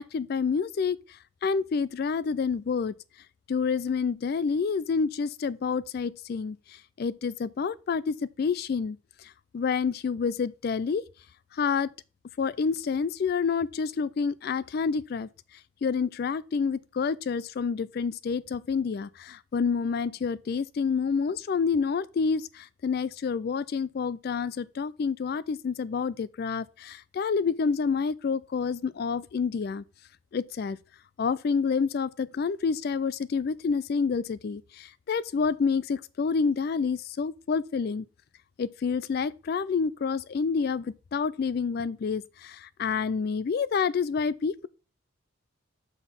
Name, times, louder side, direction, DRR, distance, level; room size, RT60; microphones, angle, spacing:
voice 1, 0.0-2.9 3.5-11.0 11.5-11.9 12.4-15.3 15.8-29.8 30.3-30.8 31.2-38.1 38.6-44.7, left 5 dB, 45° left, 0.3 m, -28 dB
6.0 x 5.7 x 5.7 m
head